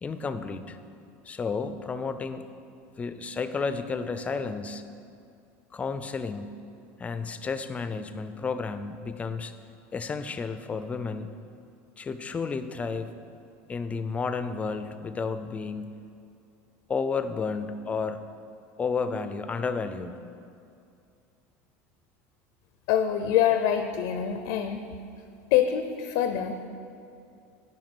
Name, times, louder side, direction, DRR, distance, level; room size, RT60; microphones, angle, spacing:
voice 1, 0.0-0.8 1.2-2.5 3.0-4.8 5.7-6.5 7.0-9.5 9.9-11.3 12.0-13.1 13.7-16.0 16.9-18.2 18.8-20.2, left 4 dB, 20° left, 10 dB, 0.4 m, -32 dB
voice 2, 22.9-24.8 25.5-26.7, left 10 dB, 70° left, 7 dB, 0.5 m, -25 dB
9.5 x 4.8 x 6.0 m, 2.5 s
supercardioid pair, 120°, 7 cm